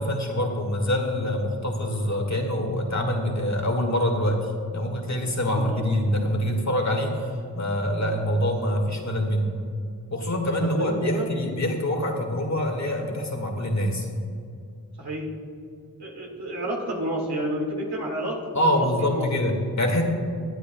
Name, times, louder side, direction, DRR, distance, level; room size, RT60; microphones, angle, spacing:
voice 1, 0.0-9.6 10.1-14.1 18.6-20.0, left 1 dB, 45° left, 2 dB, 1.8 m, -25 dB
voice 2, 10.6-11.4 15.0-15.3 16.0-19.3, right 1 dB, 80° right, -2 dB, 2.1 m, -30 dB
22.0 x 8.3 x 2.3 m, 2.4 s
cardioid pair, 40°, 38 cm